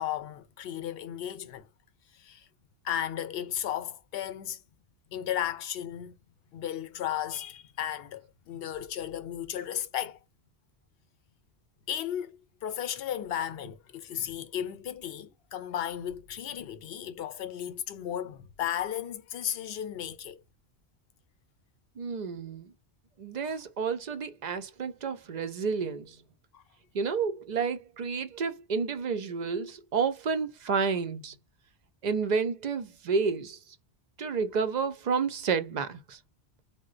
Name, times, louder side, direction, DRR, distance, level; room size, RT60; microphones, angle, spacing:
voice 1, 0.0-1.7 2.1-2.5 2.8-4.6 5.1-6.1 6.5-10.2 11.9-12.4 12.6-20.4 23.4-23.6 26.5-26.6, left 10 dB, 70° left, 0.8 m, -35 dB
voice 2, 22.0-22.7 23.2-26.2 26.9-31.4 32.0-33.6 34.2-36.2, right 5 dB, 55° right, 0.5 m, -30 dB
3.8 x 2.1 x 2.4 m
omnidirectional pair, 1.1 m